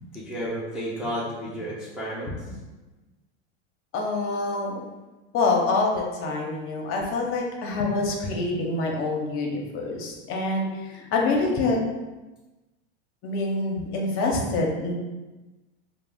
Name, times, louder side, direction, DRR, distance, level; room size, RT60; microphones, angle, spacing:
voice 1, 0.2-2.3, equal, 5° right, -8 dB, 0.3 m, -32 dB
voice 2, 3.9-4.8 5.3-11.8 13.2-14.9, left 3 dB, 40° left, 0 dB, 0.6 m, -26 dB
2.4 x 2.0 x 3.5 m, 1.1 s
supercardioid pair, 120°, 34 cm